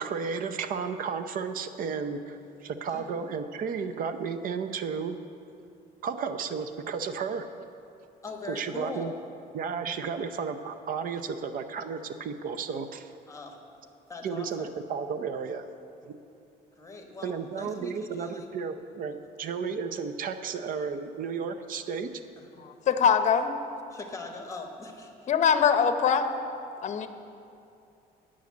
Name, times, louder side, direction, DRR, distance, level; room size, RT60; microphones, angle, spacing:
voice 1, 0.0-5.2 6.0-7.4 8.5-9.1 9.5-13.1 14.2-15.7 16.0-16.2 17.2-22.1, right 6 dB, 55° right, 10 dB, 0.6 m, -33 dB
voice 2, 8.2-9.2 13.3-13.6 14.1-14.7 16.8-18.5 21.7-21.8 22.4-22.6 23.9-25.3, left 3 dB, 20° left, 3 dB, 1.2 m, -41 dB
voice 3, 22.6-23.5 25.3-26.3 26.8-27.1, left 7 dB, 45° left, 9 dB, 0.7 m, -23 dB
9.3 x 6.3 x 8.4 m, 2.6 s
cardioid pair, 110°, 17 cm